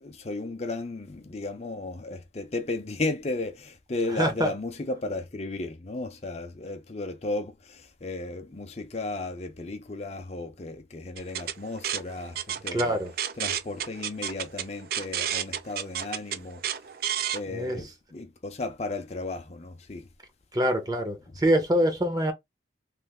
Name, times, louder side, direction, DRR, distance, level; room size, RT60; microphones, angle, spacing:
voice 1, 0.0-13.0 13.4-16.6 17.3-20.1, left 2 dB, 35° left, 0.6 m, -34 dB
voice 2, 4.2-4.5 12.7-13.1 17.5-17.8 20.5-22.3, equal, 20° right, 0.8 m, -25 dB
sound 1, 11.2-17.4, right 10 dB, 55° right, 0.4 m, -32 dB
3.2 x 2.5 x 3.6 m
head